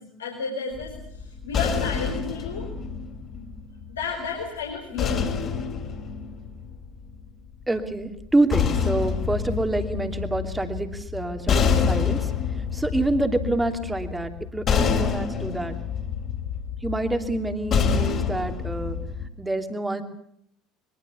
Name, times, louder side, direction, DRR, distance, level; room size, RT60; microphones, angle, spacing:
voice 1, 0.0-2.7 3.3-3.5 3.9-5.3, left 5 dB, 75° left, 0 dB, 4.6 m, -32 dB
sound 1, 0.7-4.0 5.0-7.2 8.2-19.3, left 6 dB, 40° left, 4.2 m, -27 dB
voice 2, 7.7-15.8 16.8-19.0 19.4-20.0, right 2 dB, 10° right, 6 dB, 3.0 m, -27 dB
23.5 x 22.5 x 7.1 m, 0.70 s
figure-of-eight pair, 65°, 0 cm